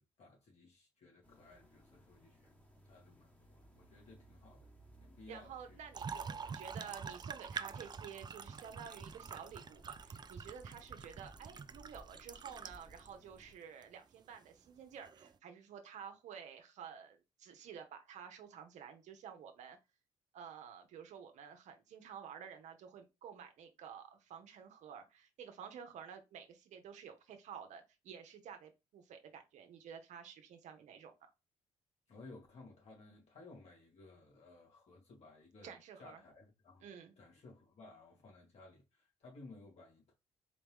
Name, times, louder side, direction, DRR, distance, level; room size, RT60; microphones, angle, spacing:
voice 1, 0.0-2.5 2.8-4.7 5.0-5.8 6.4-7.0 32.1-36.9 37.2-40.1, left 3 dB, 60° left, 2.3 m, -58 dB
sound 1, 1.2-13.5, right 1 dB, 10° left, 1.3 m, -61 dB
voice 2, 5.3-19.8 20.3-31.1 35.6-36.2 36.8-37.1, right 7 dB, 70° right, 0.8 m, -51 dB
sound 2, 5.9-13.1 13.8-13.9 15.0-15.3, right 6 dB, 35° right, 0.4 m, -46 dB
4.3 x 3.0 x 3.5 m
supercardioid pair, 65°, 13 cm